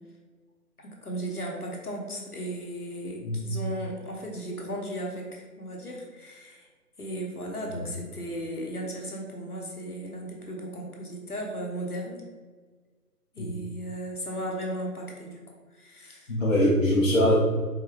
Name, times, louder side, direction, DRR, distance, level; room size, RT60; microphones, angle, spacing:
voice 1, 0.8-6.7 7.0-12.2 13.3-15.4 15.7-16.3, right 1 dB, 65° left, -1 dB, 1.1 m, -36 dB
voice 2, 16.3-17.3, left 1 dB, 50° left, -5 dB, 0.8 m, -22 dB
4.6 x 2.5 x 3.2 m, 1.4 s
figure-of-eight pair, 155°, 48 cm